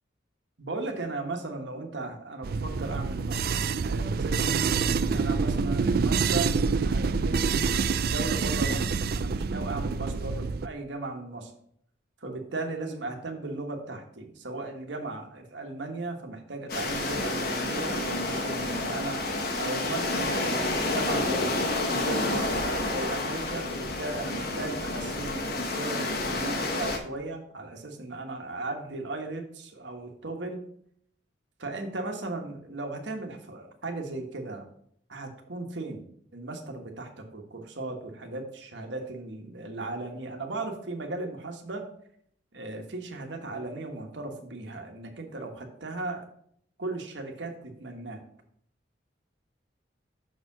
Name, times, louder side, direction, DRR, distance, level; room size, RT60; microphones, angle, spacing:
voice 1, 0.6-11.5 12.2-19.3 19.6-30.6 31.6-34.7 35.1-36.1 36.3-41.8 42.5-46.3 46.8-48.2, right 2 dB, 70° right, 4 dB, 1.3 m, -37 dB
sound 1, 2.4-10.7, right 5 dB, 55° right, 0.4 m, -27 dB
sound 2, 16.7-27.0, left 2 dB, 55° left, 1.2 m, -29 dB
6.6 x 4.5 x 6.0 m, 0.66 s
head